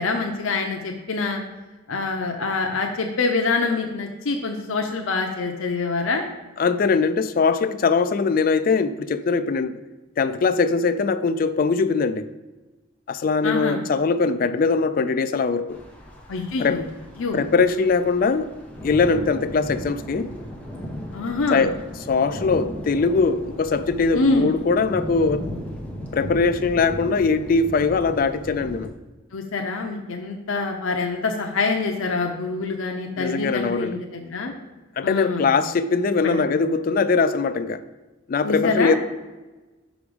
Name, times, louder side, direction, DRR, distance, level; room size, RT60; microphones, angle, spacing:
voice 1, 0.0-1.4 1.9-6.2 13.4-13.8 16.3-16.8 17.2-17.4 21.1-21.7 24.1-24.5 29.3-34.5 35.0-35.5 36.2-36.5 38.4-38.9, left 3 dB, 85° left, 2 dB, 0.6 m, -25 dB
voice 2, 6.6-9.8 10.2-12.3 13.1-15.8 16.6-16.8 17.3-18.5 18.8-20.3 21.5-21.8 22.1-25.4 26.1-28.9 33.2-34.0 35.0-37.8 38.3-39.0, left 4 dB, 45° left, 11 dB, 0.3 m, -21 dB
sound 1, 15.7-28.9, equal, 5° left, 0.8 m, -36 dB
6.0 x 5.0 x 5.0 m, 1.2 s
head